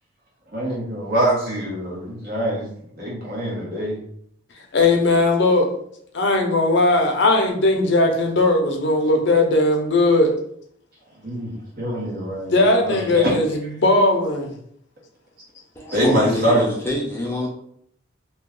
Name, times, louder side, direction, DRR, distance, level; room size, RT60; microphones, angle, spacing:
voice 1, 0.5-2.7 2.9-4.0 11.2-13.4 15.9-16.7, right 1 dB, 45° right, -5 dB, 1.2 m, -24 dB
voice 2, 4.7-5.7 6.1-10.3 12.5-14.5, left 2 dB, 55° left, 3 dB, 0.5 m, -18 dB
voice 3, 15.8-17.5, equal, 10° left, -4 dB, 0.6 m, -25 dB
2.9 x 2.3 x 3.7 m, 0.66 s
head